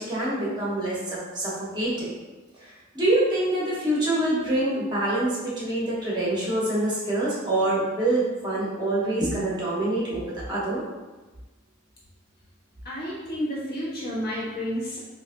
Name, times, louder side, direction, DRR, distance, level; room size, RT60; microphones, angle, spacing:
voice 1, 0.0-2.1 2.6-10.8, right 1 dB, 20° right, -7 dB, 0.9 m, -26 dB
voice 2, 12.8-15.0, equal, 50° left, -6 dB, 1.0 m, -30 dB
3.9 x 2.5 x 2.5 m, 1.2 s
head